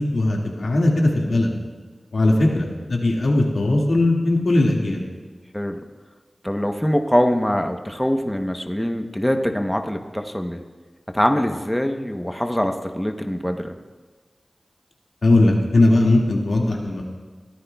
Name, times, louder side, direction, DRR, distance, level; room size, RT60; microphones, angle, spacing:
voice 1, 0.0-1.5 2.1-5.0 15.2-17.0, left 2 dB, 90° left, -1 dB, 2.0 m, -19 dB
voice 2, 6.4-10.6 11.1-13.8, equal, 10° left, 5 dB, 0.9 m, -23 dB
21.5 x 14.0 x 2.3 m, 1.4 s
wide cardioid pair, 60°, 0 cm